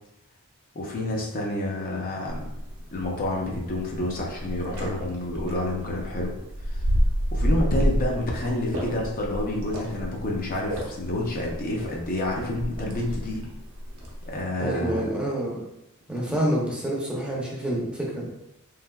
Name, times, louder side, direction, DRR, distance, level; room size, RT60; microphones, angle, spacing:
voice 1, 0.7-2.5 2.9-6.4 6.6-6.8 7.3-13.4 14.3-15.0, left 1 dB, 40° left, -1 dB, 0.5 m, -29 dB
sound 1, 2.3-14.4, equal, 65° right, 0.7 m, -30 dB
voice 2, 14.6-15.6 16.1-18.3, right 1 dB, 5° right, -4 dB, 0.5 m, -27 dB
3.2 x 2.6 x 2.2 m, 0.86 s
head